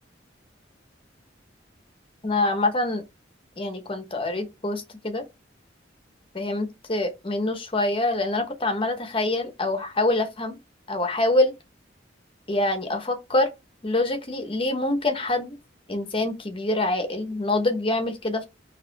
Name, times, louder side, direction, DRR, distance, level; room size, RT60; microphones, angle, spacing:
voice 1, 2.2-3.0 3.6-5.2 6.3-10.6 10.9-11.5 12.5-13.5 13.8-15.6 15.9-18.4, left 2 dB, 30° left, 0.9 m, -25 dB
4.9 x 3.0 x 3.3 m
head